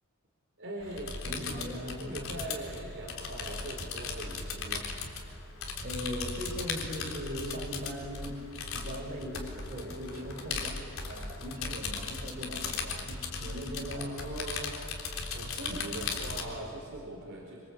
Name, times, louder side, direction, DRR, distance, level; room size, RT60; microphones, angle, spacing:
voice 1, 0.6-1.6 1.8-4.9 10.0-10.3 13.9-14.8 15.3-17.6, right 1 dB, 60° right, -2 dB, 4.5 m, -41 dB
sound 1, 0.8-16.4, left 4 dB, 70° left, 3.6 m, -38 dB
voice 2, 1.2-2.2 5.8-8.4 8.7-10.7 11.1-14.1, equal, 45° right, 0 dB, 5.8 m, -39 dB
26.5 x 26.0 x 8.3 m, 2.7 s
head